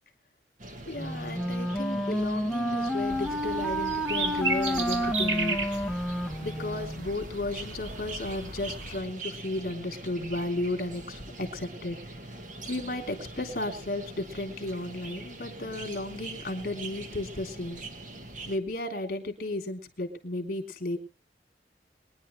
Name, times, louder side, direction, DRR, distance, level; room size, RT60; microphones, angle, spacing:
sound 1, 0.6-18.6, right 2 dB, 45° right, 1.6 m, -43 dB
voice 1, 0.9-5.9 6.4-12.0 12.7-17.8 18.5-21.0, left 2 dB, 50° left, 4 dB, 3.5 m, -34 dB
Wind instrument woodwind instrument, 1.0-7.1, equal, ahead, 0.9 m, -30 dB
sound 2, 3.1-9.0, right 3 dB, 85° right, 2.3 m, -35 dB
23.0 x 11.0 x 3.3 m, 0.31 s
head